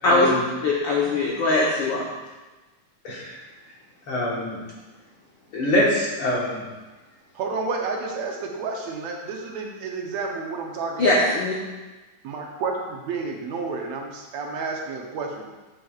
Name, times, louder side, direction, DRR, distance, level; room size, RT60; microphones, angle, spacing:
voice 1, 0.0-0.5 3.0-3.4 4.1-4.6 5.5-6.6, left 1 dB, 55° left, -5 dB, 1.9 m, -24 dB
voice 2, 0.6-2.1 11.0-11.5, left 2 dB, 85° left, -4 dB, 1.0 m, -21 dB
voice 3, 7.3-11.4 12.2-15.5, right 4 dB, 70° right, 1 dB, 1.9 m, -30 dB
12.0 x 6.3 x 2.4 m, 1.2 s
omnidirectional pair, 3.4 m